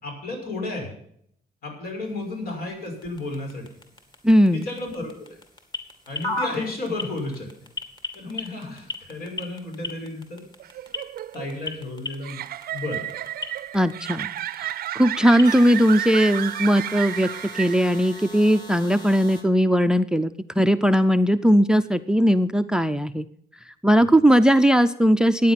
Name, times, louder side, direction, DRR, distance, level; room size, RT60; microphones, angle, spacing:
voice 1, 0.0-1.0 1.6-3.7 4.5-5.4 6.1-7.5 8.1-10.4 11.3-12.4 12.7-13.0, left 2 dB, 70° left, 2 dB, 5.9 m, -32 dB
sound 1, 2.0-19.4, left 2 dB, 25° left, 2.5 m, -39 dB
voice 2, 4.2-4.7 13.7-14.3 14.6-17.3 17.5-23.3 23.8-25.5, equal, 5° right, 13 dB, 0.5 m, -19 dB
sound 2, 10.6-18.2, right 12 dB, 65° right, 0.5 m, -32 dB
14.5 x 9.6 x 5.8 m, 0.67 s
cardioid pair, 140°, 16 cm